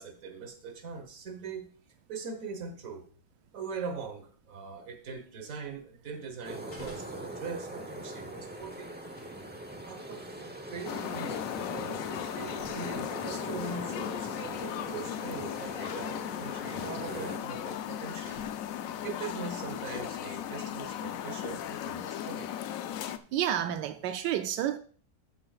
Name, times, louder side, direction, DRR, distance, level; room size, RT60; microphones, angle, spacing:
voice 1, 0.0-3.1 3.5-8.9 9.9-10.5 10.7-18.4 19.0-22.5, right 5 dB, 55° right, 1.6 m, -41 dB
sound 1, 6.4-17.4, right 1 dB, 10° right, 0.4 m, -42 dB
sound 2, 6.7-7.4 8.4-9.4 11.0-11.2 12.5-13.1 14.2-14.7 15.1-15.3 16.2-16.3 17.6-17.7 18.3-18.9 19.7-20.2 20.6-20.8, left 1 dB, 85° left, 3.7 m, -52 dB
sound 3, 10.9-23.2, left 10 dB, 70° left, 0.8 m, -37 dB
voice 2, 23.1-24.8, right 10 dB, 85° right, 1.3 m, -30 dB
13.0 x 7.8 x 2.4 m
omnidirectional pair, 1.8 m